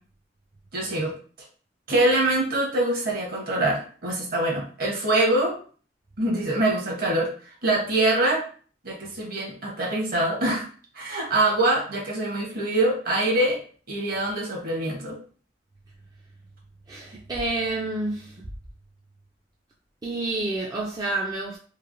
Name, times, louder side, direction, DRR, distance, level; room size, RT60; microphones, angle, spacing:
voice 1, 0.7-1.1 1.9-5.6 6.2-7.3 7.6-8.4 8.8-10.7 10.9-13.6 13.9-15.2, right 2 dB, 55° right, 1.0 m, -24 dB
voice 2, 16.9-18.4 20.0-21.6, right 2 dB, 20° right, 0.3 m, -29 dB
3.1 x 2.1 x 2.5 m
head